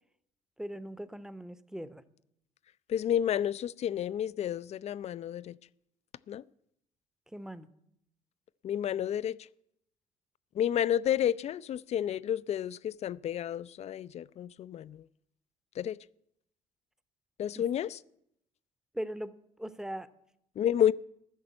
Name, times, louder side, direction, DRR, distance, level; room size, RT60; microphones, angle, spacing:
voice 1, 0.6-2.0 7.3-7.7 17.5-17.6 18.9-20.1, equal, 5° right, 0.8 m, -40 dB
voice 2, 2.9-5.6 6.3-6.4 8.6-9.4 10.6-15.0 15.8-16.0 17.4-18.0 20.6-20.9, left 10 dB, 40° left, 0.4 m, -30 dB
14.0 x 6.7 x 8.6 m
figure-of-eight pair, 50°, 18 cm